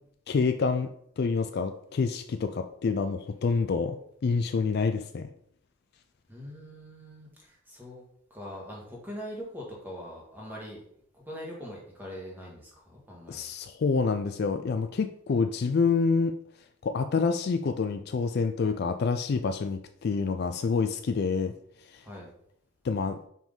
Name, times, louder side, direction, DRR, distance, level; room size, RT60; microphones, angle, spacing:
voice 1, 0.3-0.9 1.2-4.0 4.2-5.3 13.3-16.3 16.8-21.5 21.9-22.0 22.8-23.2, left 4 dB, 45° left, 0.3 m, -27 dB
voice 2, 6.3-8.0 8.3-10.8 11.1-13.5 22.0-22.3, equal, 10° right, 1.5 m, -42 dB
5.4 x 4.9 x 3.9 m
head